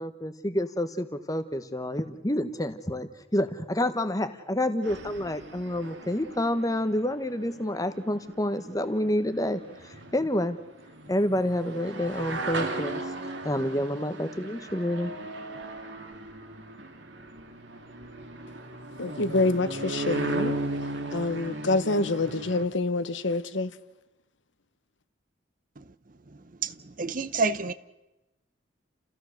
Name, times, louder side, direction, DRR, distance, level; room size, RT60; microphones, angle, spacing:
voice 1, 0.0-10.6 11.1-13.0 13.4-15.1, left 1 dB, 20° left, 1.2 m, -28 dB
sound 1, 4.8-22.7, right 2 dB, 65° right, 2.2 m, -37 dB
voice 2, 19.0-20.6 21.1-23.7, left 2 dB, 70° left, 1.0 m, -26 dB
voice 3, 26.6-27.7, right 4 dB, 45° right, 0.8 m, -28 dB
30.0 x 15.5 x 6.6 m
head